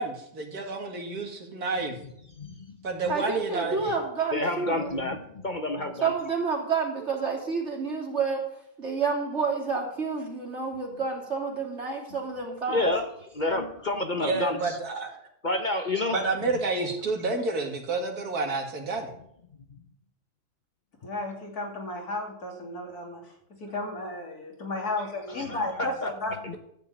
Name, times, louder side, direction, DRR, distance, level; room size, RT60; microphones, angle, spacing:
voice 1, 0.0-2.0 2.8-3.9 14.2-15.2 16.1-19.1, right 3 dB, 90° right, 3 dB, 2.5 m, -30 dB
voice 2, 2.0-2.8 3.0-3.1 4.3-6.1 12.7-13.1 13.3-14.8 15.4-16.2 25.3-26.1 26.4-26.6, left 2 dB, 35° left, 6 dB, 0.9 m, -29 dB
voice 3, 3.1-5.0 6.0-8.4 8.8-12.9, right 5 dB, 50° right, -1 dB, 3.1 m, -29 dB
voice 4, 21.0-23.2 23.6-26.3, left 2 dB, 90° left, 0 dB, 3.2 m, -33 dB
13.0 x 5.5 x 8.7 m, 0.75 s
omnidirectional pair, 1.6 m